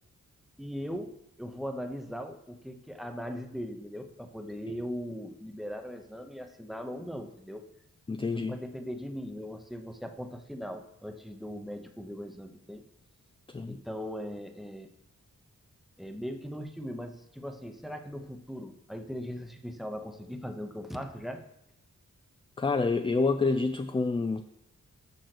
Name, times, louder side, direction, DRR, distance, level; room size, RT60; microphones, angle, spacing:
voice 1, 0.6-7.6 8.3-12.8 13.7-14.9 16.0-21.4, equal, ahead, 6 dB, 0.8 m, -39 dB
voice 2, 8.1-8.6 13.5-13.8 22.6-24.4, left 3 dB, 20° left, 8 dB, 0.3 m, -28 dB
6.6 x 6.2 x 5.9 m, 0.79 s
wide cardioid pair, 110°, 31 cm